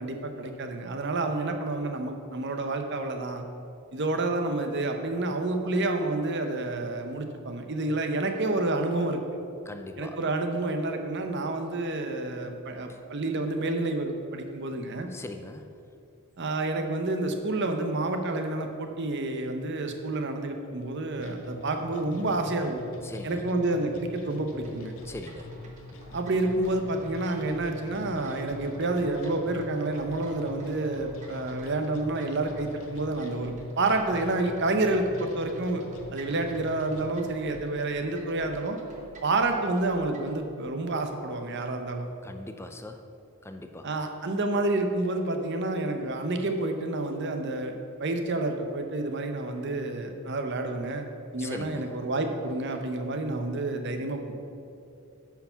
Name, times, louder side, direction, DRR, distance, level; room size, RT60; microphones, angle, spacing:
voice 1, 0.0-3.4 3.9-9.2 10.0-15.1 16.4-22.8 23.2-24.9 26.1-35.8 36.1-38.8 39.2-42.1 43.8-47.7 48.0-51.0 51.3-54.2, right 2 dB, 50° right, 5 dB, 0.8 m, -29 dB
voice 2, 9.7-10.2 12.9-13.0 15.1-15.7 23.0-23.5 25.0-25.5 42.2-43.0 43.4-44.0 51.4-52.0, left 2 dB, 10° left, 7 dB, 0.4 m, -41 dB
sound 1, 21.2-37.2, left 2 dB, 65° left, 0.8 m, -45 dB
sound 2, 24.5-40.4, right 2 dB, 35° right, 1.0 m, -51 dB
9.1 x 4.7 x 5.8 m, 2.6 s
head